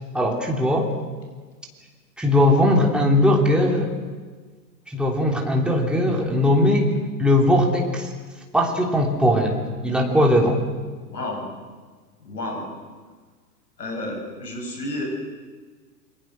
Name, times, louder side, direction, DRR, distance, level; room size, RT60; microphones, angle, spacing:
voice 1, 0.1-0.9 2.2-3.9 4.9-6.9 7.2-8.1 8.5-10.6, left 1 dB, ahead, 0 dB, 3.3 m, -19 dB
voice 2, 10.9-11.5 12.2-12.7 13.8-15.0, left 1 dB, 75° left, 2 dB, 7.5 m, -31 dB
29.0 x 22.5 x 6.3 m, 1.4 s
figure-of-eight pair, 105°, 49 cm